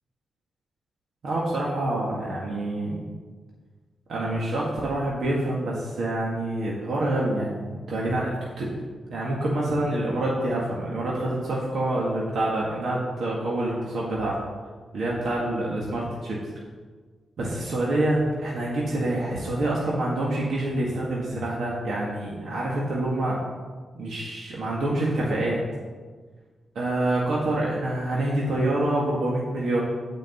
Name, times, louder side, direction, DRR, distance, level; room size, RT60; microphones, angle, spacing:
voice 1, 1.2-3.0 4.1-8.8 9.1-14.4 14.9-16.4 17.4-23.4 23.9-25.6 26.8-29.8, right 1 dB, 65° right, -4 dB, 1.9 m, -26 dB
9.5 x 5.2 x 7.9 m, 1.5 s
wide cardioid pair, 140°, 0 cm